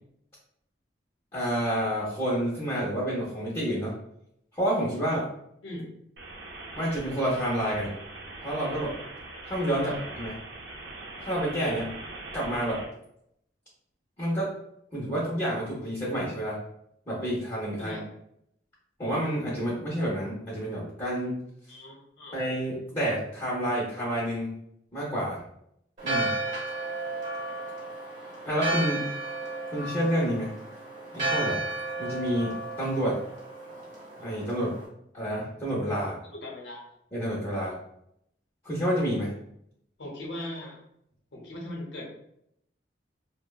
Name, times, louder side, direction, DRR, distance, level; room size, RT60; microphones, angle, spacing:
voice 1, 1.3-3.9 4.5-5.3 6.8-7.9 8.4-8.9 9.5-10.3 11.2-11.9 12.3-12.8 14.2-14.5 14.9-16.6 17.1-18.0 19.0-21.4 22.3-24.6 24.9-25.4 26.0-26.3 28.5-29.1 29.7-30.5 31.1-31.6 32.0-33.2 34.2-34.7 35.1-36.2 37.1-37.8 38.6-39.3, equal, 25° left, -6 dB, 0.6 m, -29 dB
sound 1, 6.2-12.8, right 2 dB, 70° right, 0.6 m, -42 dB
voice 2, 17.8-18.1 21.7-22.4 36.2-36.9 40.0-40.8 41.3-42.0, left 1 dB, 85° left, -1 dB, 0.7 m, -39 dB
Church bell, 26.0-34.9, right 2 dB, 45° right, 0.9 m, -33 dB
2.9 x 2.1 x 2.2 m, 0.75 s
head